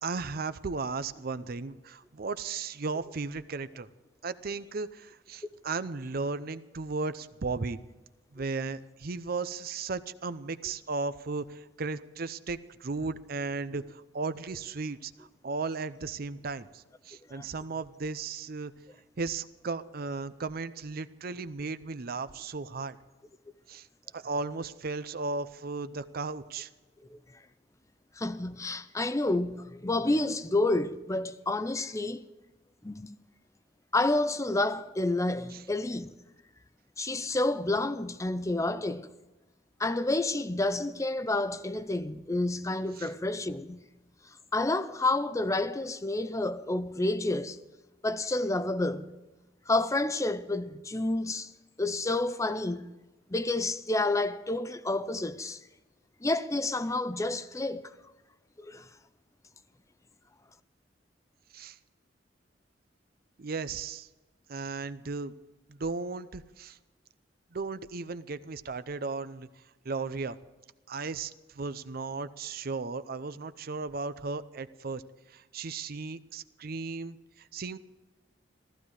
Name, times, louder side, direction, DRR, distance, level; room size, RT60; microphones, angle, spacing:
voice 1, 0.0-3.9 4.2-7.8 8.3-18.7 19.2-23.0 23.7-23.9 24.1-26.7 43.0-43.1 61.5-61.8 63.4-64.1 64.5-65.3 65.7-66.8 67.5-69.5 69.8-70.4 70.9-75.0 75.3-77.8, right 4 dB, 55° right, 0.6 m, -35 dB
voice 2, 28.2-32.2 32.8-33.2 33.9-36.1 37.0-39.1 39.8-43.9 44.5-47.6 48.0-49.1 49.7-51.5 51.8-52.9 53.3-55.6 56.2-57.9 58.6-58.9, left 2 dB, 15° left, 0.6 m, -29 dB
15.0 x 15.0 x 4.8 m
head